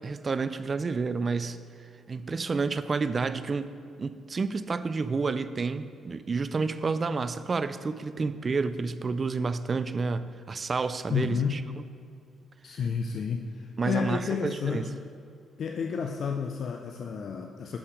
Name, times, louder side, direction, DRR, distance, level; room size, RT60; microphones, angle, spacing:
voice 1, 0.0-1.6 2.1-3.7 4.0-11.6 13.8-14.9, right 4 dB, 35° right, 13 dB, 0.3 m, -30 dB
voice 2, 11.1-11.6 12.6-14.9 15.6-17.8, left 6 dB, 60° left, 3 dB, 0.4 m, -31 dB
6.3 x 5.8 x 5.1 m, 2.5 s
cardioid pair, 90°, 0 cm